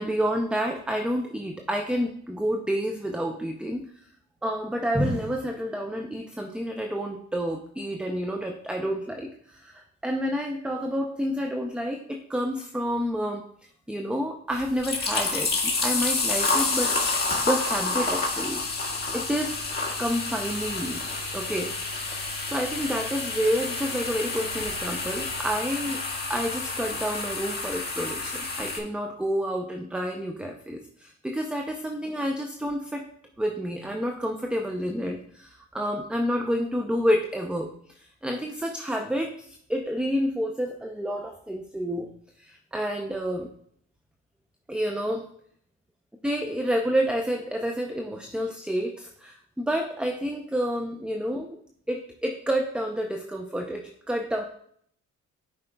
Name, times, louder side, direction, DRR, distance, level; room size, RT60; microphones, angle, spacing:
voice 1, 0.0-3.8 4.4-13.4 13.9-18.8 19.1-19.6 20.0-21.0 21.3-22.1 22.5-26.0 26.3-33.1 33.4-37.7 38.2-42.1 42.4-43.5 44.7-45.2 46.2-51.6 51.9-54.4, equal, 5° right, 3 dB, 0.6 m, -29 dB
sound 1, 14.5-28.8, left 3 dB, 35° left, 1.6 m, -29 dB
10.5 x 4.9 x 2.3 m, 0.65 s
cardioid pair, 90°, 30 cm